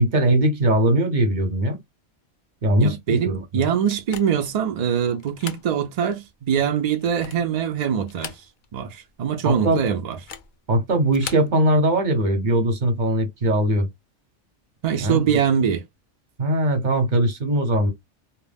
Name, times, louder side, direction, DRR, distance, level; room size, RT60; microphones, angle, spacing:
voice 1, 0.0-1.8 2.6-3.4 9.4-9.8 10.7-13.9 15.0-15.2 16.4-17.9, right 1 dB, 45° right, 0.8 m, -20 dB
voice 2, 2.8-8.3 8.7-10.2 14.8-15.8, right 8 dB, 80° right, 0.3 m, -23 dB
sound 1, 3.9-4.6 5.2-5.7 6.1-6.2 6.9-7.5 8.0-8.8 9.1-9.2 10.1-10.5 11.1-11.5, left 7 dB, 60° left, 0.5 m, -38 dB
2.2 x 2.1 x 3.3 m
omnidirectional pair, 1.2 m